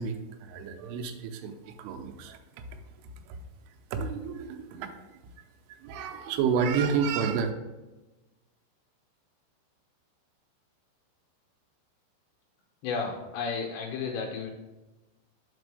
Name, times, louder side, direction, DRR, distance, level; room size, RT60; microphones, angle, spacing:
voice 1, 0.0-2.4 3.3-3.4 3.9-4.9 5.8-7.5, right 6 dB, 90° right, 5 dB, 3.2 m, -30 dB
voice 2, 12.8-14.5, left 5 dB, 80° left, 1 dB, 2.8 m, -32 dB
6.0 x 5.1 x 4.7 m, 1.1 s
omnidirectional pair, 5.6 m